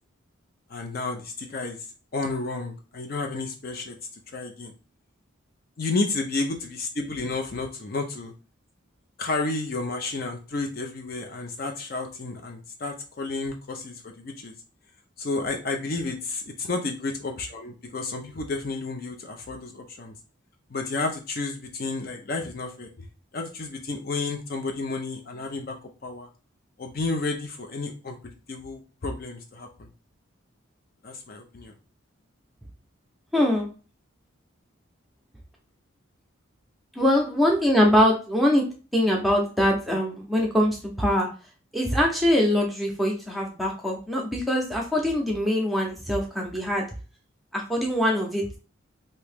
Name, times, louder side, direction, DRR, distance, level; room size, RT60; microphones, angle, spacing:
voice 1, 0.7-4.0 4.3-4.7 5.8-8.3 9.2-14.5 15.2-20.2 20.7-23.1 23.3-26.3 26.8-29.9 31.0-31.7, left 3 dB, 45° left, 3 dB, 0.5 m, -31 dB
voice 2, 33.3-33.7 37.0-38.6 38.9-41.3 41.7-46.8 47.5-48.5, left 1 dB, ahead, -1 dB, 0.7 m, -23 dB
3.0 x 2.8 x 3.4 m, 0.35 s
head